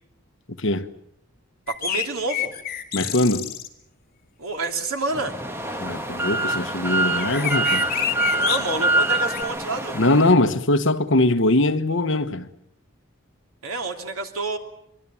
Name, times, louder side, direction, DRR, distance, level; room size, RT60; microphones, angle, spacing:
voice 1, 0.6-0.9 2.9-3.5 5.8-7.9 9.9-12.5, left 2 dB, 60° left, 1.3 m, -21 dB
sound 1, 1.7-3.7 7.2-8.6 9.3-9.4, left 10 dB, 45° left, 2.5 m, -28 dB
voice 2, 1.7-2.5 4.4-5.4 7.0-7.1 8.2-10.0 13.6-14.6, right 3 dB, 80° right, 3.1 m, -28 dB
sound 2, 5.1-10.3, right 2 dB, 10° right, 1.4 m, -25 dB
25.0 x 23.5 x 7.1 m
head